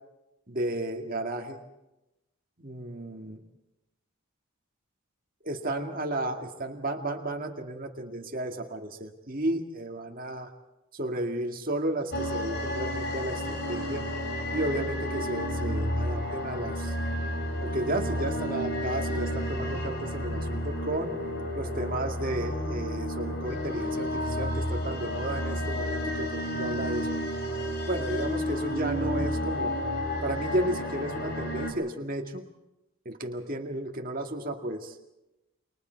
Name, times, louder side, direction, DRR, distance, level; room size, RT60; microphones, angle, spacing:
voice 1, 0.5-1.6 2.6-3.4 5.4-10.5 10.9-14.1 14.5-17.0 17.6-21.1 21.6-27.1 27.9-29.8 30.2-32.5 33.1-35.0, right 1 dB, 40° right, 3 dB, 2.1 m, -33 dB
sound 1, 12.1-31.7, equal, 45° left, 3.6 m, -31 dB
29.5 x 23.5 x 4.6 m, 0.94 s
head